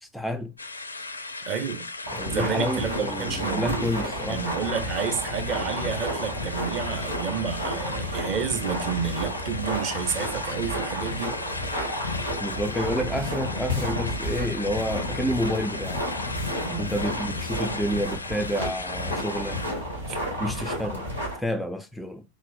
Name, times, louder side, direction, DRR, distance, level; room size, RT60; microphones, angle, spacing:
voice 1, 0.0-0.5 2.1-4.5 12.4-16.0 16.8-19.6 20.4-21.1 21.4-22.2, equal, ahead, 0.3 m, -29 dB
sound 1, 0.6-19.7, left 3 dB, 80° left, 0.4 m, -37 dB
voice 2, 1.4-1.9 2.3-3.9 4.3-11.4 16.6-16.9 20.1-20.2, right 6 dB, 40° right, 0.9 m, -30 dB
sound 2, 2.0-21.4, equal, 90° right, 1.8 m, -31 dB
4.1 x 3.1 x 4.0 m
figure-of-eight pair, 90°, 0 cm